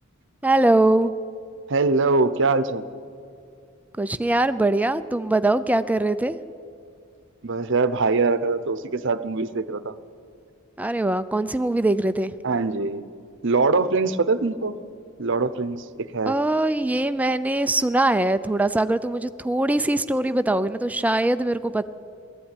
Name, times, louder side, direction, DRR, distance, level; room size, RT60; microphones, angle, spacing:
voice 1, 0.4-1.1 4.0-6.4 10.8-12.4 16.3-21.8, right 2 dB, 5° right, 12 dB, 0.4 m, -22 dB
voice 2, 1.7-2.8 7.4-9.9 12.4-13.0 13.4-14.7 15.2-16.3, right 3 dB, 60° right, 13 dB, 0.8 m, -23 dB
19.0 x 14.5 x 9.9 m, 2.4 s
head